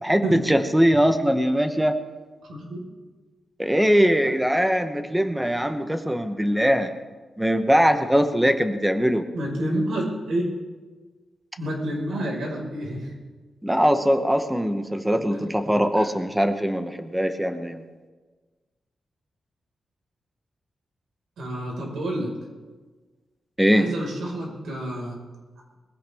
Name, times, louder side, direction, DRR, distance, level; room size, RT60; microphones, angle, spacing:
voice 1, 0.0-2.0 3.6-6.9 7.4-9.3 13.6-17.8 23.6-23.9, equal, 5° right, 8 dB, 1.0 m, -21 dB
voice 2, 2.5-2.8 9.3-10.5 11.6-13.1 15.9-16.0 21.4-22.3 23.7-25.2, right 1 dB, 90° right, -1 dB, 4.8 m, -29 dB
21.5 x 15.5 x 3.5 m, 1.4 s
wide cardioid pair, 155°, 0 cm